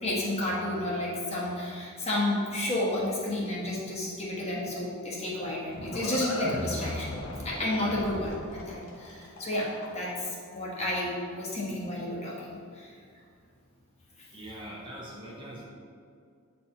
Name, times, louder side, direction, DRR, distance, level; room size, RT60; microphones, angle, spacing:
voice 1, 0.0-7.2 7.4-12.5 12.7-12.9, left 1 dB, 30° left, -5 dB, 1.1 m, -31 dB
Livestock farm animals working animals, 5.1-10.2, left 1 dB, 65° left, 1.0 m, -38 dB
voice 2, 14.3-15.6, right 1 dB, 20° right, -5 dB, 1.0 m, -42 dB
8.4 x 4.4 x 2.9 m, 2.3 s
head